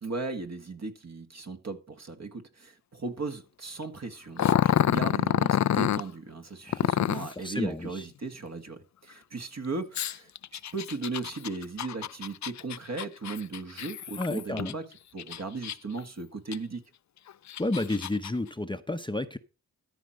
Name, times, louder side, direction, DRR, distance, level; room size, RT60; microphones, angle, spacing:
voice 1, 0.0-14.9 15.1-16.8, right 3 dB, 45° right, 1.9 m, -37 dB
Growling, 4.4-6.0 6.7-7.3 9.9-14.7 15.2-16.0 16.5-16.6 17.3-18.3, left 10 dB, 55° left, 0.5 m, -27 dB
voice 2, 7.4-8.1 14.2-14.7 17.6-19.4, left 2 dB, 15° left, 0.8 m, -31 dB
13.5 x 4.6 x 6.5 m
cardioid pair, 55°, 36 cm